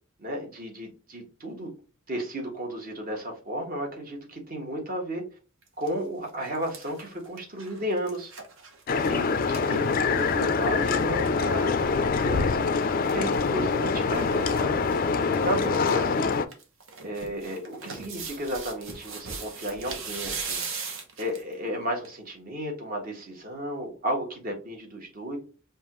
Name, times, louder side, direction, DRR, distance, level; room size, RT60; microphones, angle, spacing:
voice 1, 0.2-1.7 2.1-5.2 5.8-8.3 9.1-9.8 10.1-14.7 15.2-16.3 17.0-20.6 21.2-25.4, equal, 40° right, 1 dB, 1.4 m, -33 dB
sound 1, 5.6-5.9 6.3-10.5 10.8-10.9 11.1-11.3 12.6-13.5 14.1-14.6 14.9-15.0 15.3-15.9 16.3-21.5 22.0-22.1, right 5 dB, 65° right, 1.0 m, -39 dB
sound 2, 8.9-16.5, left 4 dB, 45° left, 0.4 m, -25 dB
5.3 x 2.5 x 3.0 m, 0.35 s
head